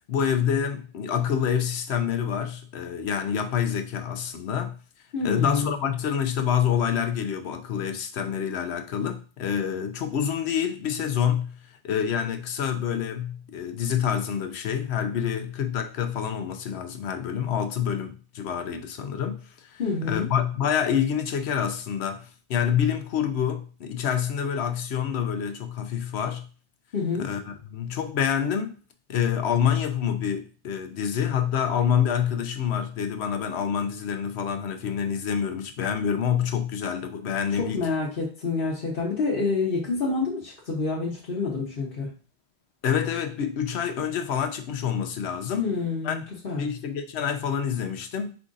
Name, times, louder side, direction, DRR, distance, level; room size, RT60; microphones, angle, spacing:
voice 1, 0.1-4.8 5.2-11.6 11.8-26.5 27.2-28.8 29.1-37.8 42.8-45.7 46.0-46.2 46.6-48.3, left 8 dB, 70° left, 0.9 m, -27 dB
voice 2, 5.1-5.7 19.8-20.3 26.9-27.3 37.5-42.1 45.6-46.6, left 4 dB, 55° left, 1.2 m, -28 dB
4.8 x 2.5 x 3.8 m
omnidirectional pair, 1.2 m